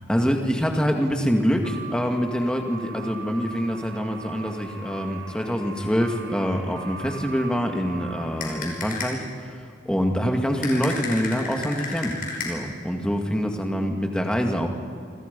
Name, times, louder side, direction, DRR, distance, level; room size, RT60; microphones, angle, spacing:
voice 1, 0.1-12.2 12.5-14.7, equal, 5° left, 3 dB, 2.1 m, -25 dB
sound 1, 1.6-8.7, right 2 dB, 75° right, 2.8 m, -40 dB
sound 2, 8.4-9.3 10.6-12.8, left 4 dB, 45° left, 5.3 m, -33 dB
28.5 x 26.0 x 5.4 m, 2.2 s
head